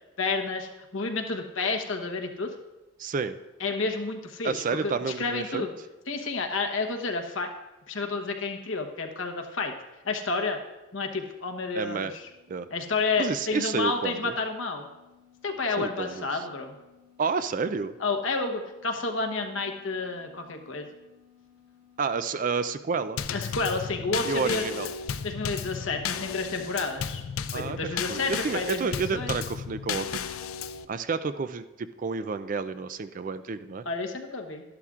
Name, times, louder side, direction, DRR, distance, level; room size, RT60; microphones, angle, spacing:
voice 1, 0.2-2.5 3.6-5.7 6.1-7.5 7.9-9.7 10.0-10.6 10.9-12.3 12.7-14.9 15.4-16.7 18.0-20.9 23.3-24.7 25.2-27.2 27.5-29.3 33.8-34.6, left 3 dB, 70° left, 3 dB, 1.0 m, -30 dB
voice 2, 3.0-3.4 4.4-5.7 11.7-12.1 12.5-12.7 13.2-14.3 15.8-16.3 17.2-17.9 22.0-23.2 24.3-24.9 27.5-27.8 28.1-30.2 30.9-33.8, right 5 dB, 40° right, 12 dB, 0.4 m, -30 dB
sound 1, 10.4-26.6, left 9 dB, 15° right, 1.7 m, -60 dB
Drum kit / Snare drum / Bass drum, 23.2-30.9, left 7 dB, 90° left, 0.4 m, -34 dB
12.5 x 11.5 x 2.4 m, 1.0 s
head